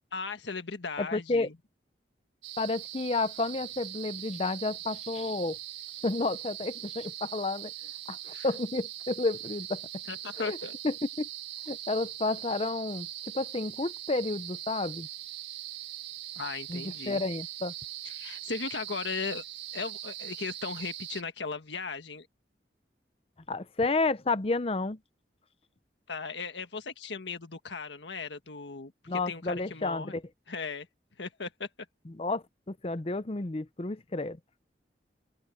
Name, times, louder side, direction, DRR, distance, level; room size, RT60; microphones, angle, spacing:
voice 1, 0.1-1.5 8.3-8.4 10.1-10.7 16.4-17.2 18.1-19.4 19.7-22.3 26.1-30.2 30.5-30.9 31.2-31.7, left 4 dB, 85° left, 1.5 m, -37 dB
voice 2, 1.0-1.5 2.6-5.6 6.0-7.7 8.1-9.8 10.4-10.6 10.8-11.3 11.7-13.1 13.3-15.1 16.7-17.7 23.5-25.0 29.1-30.2 32.1-34.4, left 3 dB, 35° left, 0.6 m, -31 dB
sound 1, 2.4-21.2, right 13 dB, 80° right, 1.1 m, -41 dB
open air
head